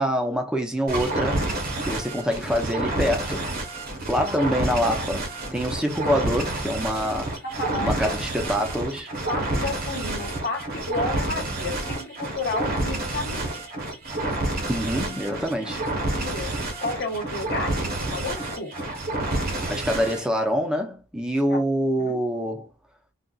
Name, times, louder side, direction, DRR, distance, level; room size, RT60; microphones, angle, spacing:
voice 1, 0.0-1.4 1.9-3.5 4.0-7.4 7.8-9.1 14.7-15.8 19.7-22.7, equal, 5° right, 0.6 m, -25 dB
sound 1, 0.9-20.3, right 2 dB, 45° right, 0.9 m, -29 dB
voice 2, 4.1-4.6 7.4-8.1 9.3-13.5 15.6-15.7 16.1-16.5 16.8-18.9 19.5-19.6 21.5-21.6 22.0-22.2, left 2 dB, 50° left, 1.0 m, -32 dB
3.8 x 2.4 x 2.3 m
head